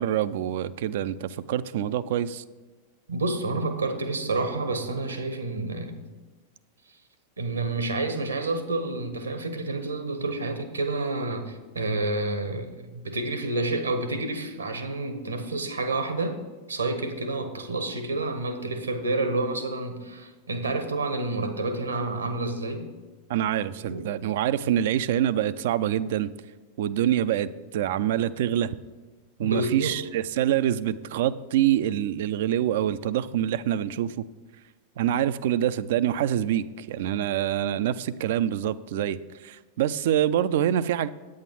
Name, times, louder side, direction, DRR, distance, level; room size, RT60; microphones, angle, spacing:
voice 1, 0.0-2.4 23.3-26.3 26.8-28.8 29.4-34.2 35.0-41.1, right 11 dB, 55° right, 15 dB, 0.4 m, -26 dB
voice 2, 3.1-6.1 7.4-16.4 16.7-22.9 23.8-24.0 29.4-30.1, right 2 dB, 75° right, 8 dB, 1.3 m, -29 dB
8.9 x 8.6 x 5.8 m, 1.3 s
figure-of-eight pair, 90°, 0 cm